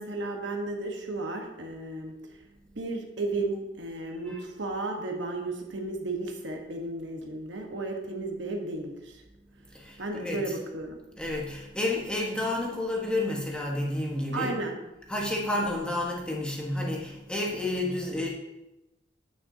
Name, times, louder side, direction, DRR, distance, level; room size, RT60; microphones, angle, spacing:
voice 1, 0.0-2.1 2.7-9.2 10.0-11.0 14.3-14.7, right 2 dB, 65° right, 2 dB, 1.3 m, -33 dB
voice 2, 9.7-10.5 11.1-14.6 15.0-18.3, left 1 dB, 5° left, -2 dB, 1.3 m, -30 dB
9.2 x 9.2 x 2.8 m, 0.96 s
head